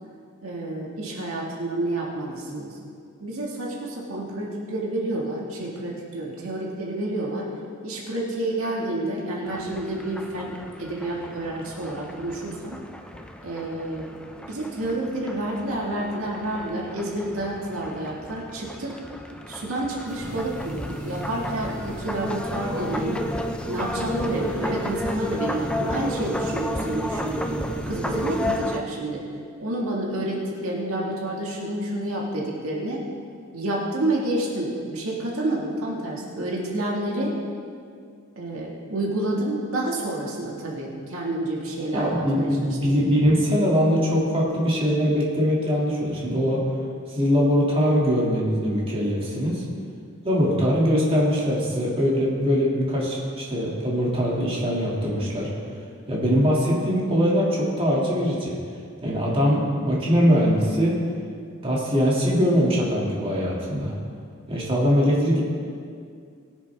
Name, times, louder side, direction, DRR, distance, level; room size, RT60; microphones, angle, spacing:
voice 1, 0.4-2.7 3.2-7.5 7.8-12.8 13.4-14.1 14.5-18.9 19.5-23.2 23.7-29.2 29.6-33.0 33.5-37.3 38.4-42.9, right 1 dB, 70° right, -3 dB, 2.0 m, -29 dB
sound 1, 9.5-28.8, equal, 5° left, 0.6 m, -33 dB
sound 2, 20.1-28.6, equal, 20° left, 2.2 m, -37 dB
voice 2, 41.9-46.6 47.1-49.6 50.2-55.5 56.1-58.6 59.0-61.0 61.6-63.9 64.5-65.4, equal, 25° right, -5 dB, 2.3 m, -22 dB
21.5 x 7.4 x 3.5 m, 2.3 s
head